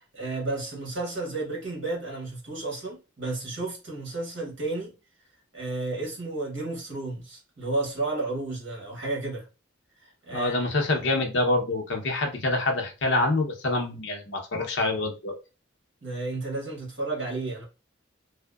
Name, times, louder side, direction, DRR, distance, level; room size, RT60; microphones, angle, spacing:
voice 1, 0.1-4.9 5.5-9.4 10.0-10.6 16.0-17.6, right 2 dB, 65° right, 1.1 m, -32 dB
voice 2, 10.3-15.3, left 2 dB, 65° left, 0.6 m, -26 dB
2.7 x 2.1 x 2.2 m
head